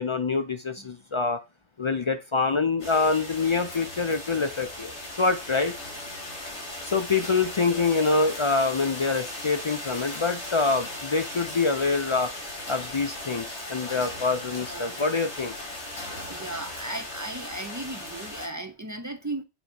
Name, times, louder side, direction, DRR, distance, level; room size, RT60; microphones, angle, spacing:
voice 1, 0.0-1.4 1.8-5.7 6.8-12.3 12.7-15.6, left 4 dB, 50° left, 0.3 m, -25 dB
sound 1, 2.8-18.5, left 1 dB, 75° left, 2.9 m, -37 dB
voice 2, 6.3-6.7 14.7-15.0 16.0-19.4, right 2 dB, 20° right, 0.5 m, -37 dB
7.0 x 2.9 x 5.2 m
omnidirectional pair, 1.2 m